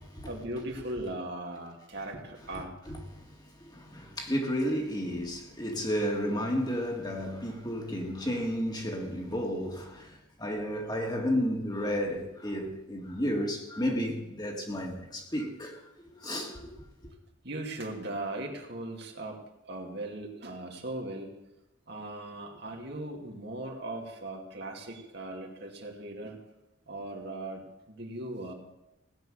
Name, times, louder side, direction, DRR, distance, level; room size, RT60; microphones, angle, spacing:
voice 1, 0.2-2.9 17.4-21.4 21.9-26.4 26.9-28.5, right 1 dB, 60° right, 2.4 m, -39 dB
voice 2, 2.9-3.3 3.6-16.7, equal, 20° left, 2.0 m, -32 dB
17.0 x 9.4 x 6.5 m
head